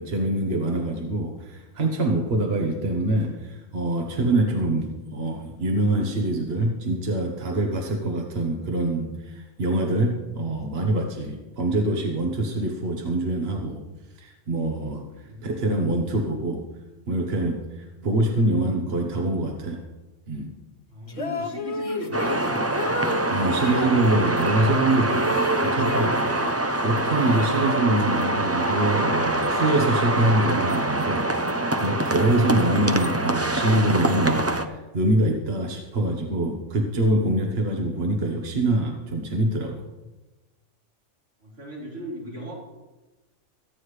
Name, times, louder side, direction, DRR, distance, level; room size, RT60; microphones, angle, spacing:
voice 1, 0.0-13.8 14.2-16.6 17.1-19.8 20.3-20.5 23.3-39.8, right 1 dB, 55° right, 2 dB, 1.4 m, -25 dB
voice 2, 15.2-15.8 20.9-22.9 41.4-42.5, equal, 85° right, -7 dB, 5.0 m, -37 dB
sound 1, 21.1-24.0 24.6-26.6 26.9-28.0, left 1 dB, 30° left, 0.8 m, -31 dB
sound 2, 22.1-34.7, right 2 dB, 15° right, 0.5 m, -25 dB
23.5 x 9.3 x 3.3 m, 1.1 s
omnidirectional pair, 1.3 m